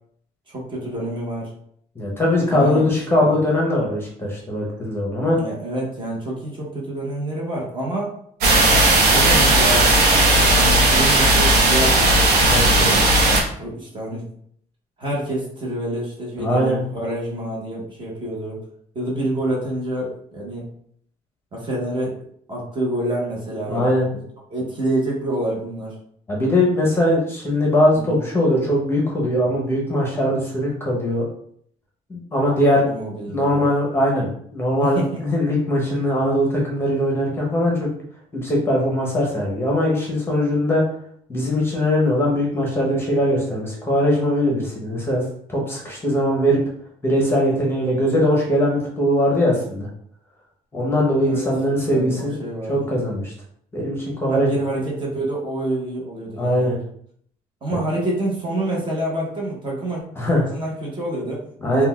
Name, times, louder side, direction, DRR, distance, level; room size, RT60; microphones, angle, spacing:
voice 1, 0.5-1.5 2.5-3.4 5.4-8.1 8.6-9.9 10.2-12.2 12.6-13.1 13.6-14.3 15.0-18.6 18.9-20.7 21.5-22.2 22.5-24.2 24.5-26.0 27.9-28.2 32.9-33.7 34.8-35.2 51.2-51.5 51.8-52.9 54.3-56.7 57.6-60.0 60.5-61.4 61.7-61.9, right 1 dB, 30° right, -3 dB, 0.9 m, -27 dB
voice 2, 2.0-5.4 12.5-13.0 16.4-16.8 23.7-24.0 26.3-31.3 32.1-32.8 33.3-37.9 38.3-40.8 41.3-45.2 45.5-46.6 47.0-49.9 50.7-52.3 52.7-53.3 53.7-54.5 56.4-56.7 60.2-60.4 61.6-61.9, left 1 dB, 15° left, -3 dB, 0.7 m, -20 dB
sound 1, 8.4-13.4, right 2 dB, 90° right, 0.7 m, -15 dB
3.8 x 2.2 x 2.2 m, 0.65 s
cardioid pair, 135°, 15 cm